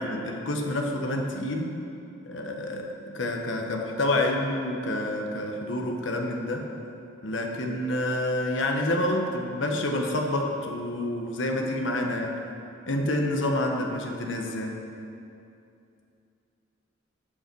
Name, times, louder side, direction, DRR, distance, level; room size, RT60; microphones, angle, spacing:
voice 1, 0.0-1.8 2.2-6.7 7.2-12.4 12.8-14.8, left 1 dB, 80° left, 2 dB, 1.2 m, -28 dB
15.5 x 5.5 x 4.7 m, 2.6 s
head